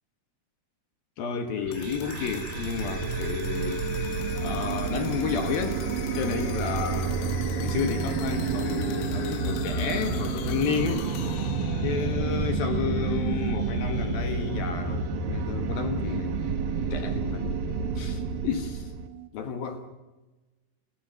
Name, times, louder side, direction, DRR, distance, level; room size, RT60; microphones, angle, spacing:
voice 1, 1.2-4.1 4.4-5.8 6.1-7.2 7.6-11.1 11.8-16.4 16.9-17.6 18.0-18.9 19.3-19.9, left 6 dB, 60° left, 7 dB, 2.7 m, -31 dB
sound 1, 1.6-15.4, left 13 dB, 90° left, 3.6 m, -43 dB
sound 2, 1.6-19.1, right 4 dB, 60° right, 2.5 m, -30 dB
sound 3, 4.3-19.3, right 25 dB, 90° right, 3.5 m, -42 dB
29.5 x 14.5 x 6.7 m, 1.1 s
omnidirectional pair, 5.7 m